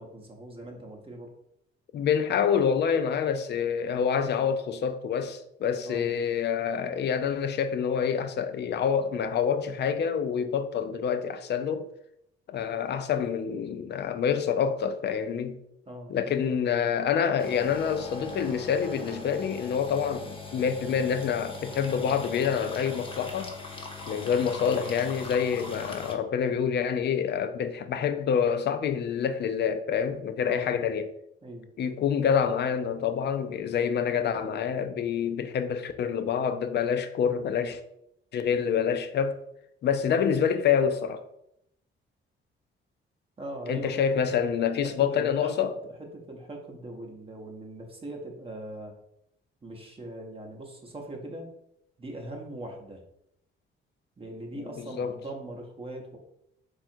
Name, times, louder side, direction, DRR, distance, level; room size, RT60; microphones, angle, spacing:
voice 1, 0.0-1.3 5.8-6.1 15.9-16.4 30.4-30.7 31.4-31.7 43.4-44.0 44.8-48.9 49.6-51.5 52.0-53.0 54.2-56.2, right 1 dB, 25° right, 0.7 m, -40 dB
voice 2, 1.9-11.9 12.5-15.6 16.1-23.6 24.1-31.1 31.8-37.8 38.3-39.4 39.8-41.2 43.7-45.7 54.5-55.1, left 7 dB, 55° left, 0.5 m, -27 dB
sound 1, 17.4-26.1, left 2 dB, 25° left, 0.7 m, -40 dB
3.6 x 2.4 x 4.3 m
cardioid pair, 110°, 21 cm